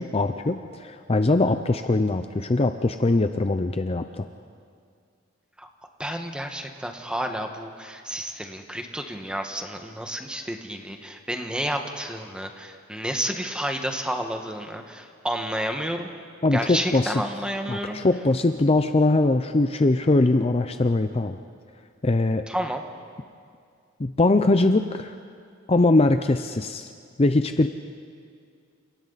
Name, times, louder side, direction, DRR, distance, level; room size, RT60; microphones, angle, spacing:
voice 1, 0.0-4.3 16.4-17.2 17.7-21.4 22.0-22.5 24.0-25.1 25.7-26.9 27.2-27.7, left 2 dB, 30° left, 8 dB, 0.6 m, -21 dB
voice 2, 6.0-16.1 16.5-18.0 22.5-22.8, equal, 5° right, 4 dB, 1.5 m, -30 dB
30.0 x 27.5 x 4.1 m, 2.3 s
head